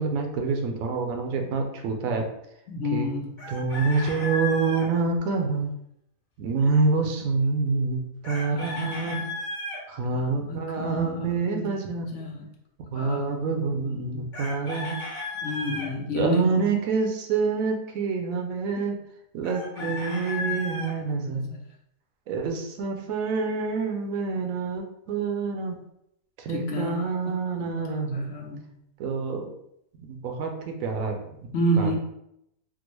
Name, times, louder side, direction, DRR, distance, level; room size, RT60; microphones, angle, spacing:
voice 1, 0.0-2.3 2.9-3.1 3.5-5.7 6.4-9.2 9.9-12.1 12.9-15.0 16.1-19.0 19.3-21.5 22.3-25.8 26.4-28.3 29.0-29.5 30.0-31.5 31.8-32.0, right 4 dB, 80° right, 3 dB, 1.0 m, -27 dB
voice 2, 2.7-3.4 8.4-9.3 10.1-12.5 12.9-14.3 15.4-16.7 19.8-20.9 21.2-21.6 26.5-27.3 27.8-28.7 31.5-32.0, equal, 65° left, 1 dB, 0.9 m, -31 dB
Chicken rooster, 3.4-4.9 8.2-9.8 14.3-15.9 19.4-20.9, left 3 dB, 40° left, 1.1 m, -34 dB
3.6 x 2.1 x 3.0 m, 0.78 s
omnidirectional pair, 1.4 m